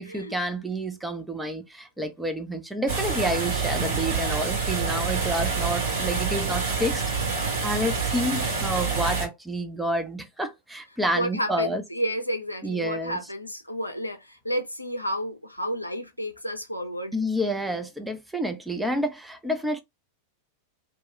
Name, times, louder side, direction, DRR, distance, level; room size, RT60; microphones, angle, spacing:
voice 1, 0.0-7.0 7.6-11.8 12.6-13.2 17.1-19.8, equal, 5° right, 0.5 m, -29 dB
sound 1, 2.9-9.3, right 5 dB, 60° right, 1.7 m, -27 dB
voice 2, 11.1-17.1, equal, 85° left, 0.5 m, -31 dB
3.0 x 2.2 x 3.1 m
figure-of-eight pair, 90°, 0 cm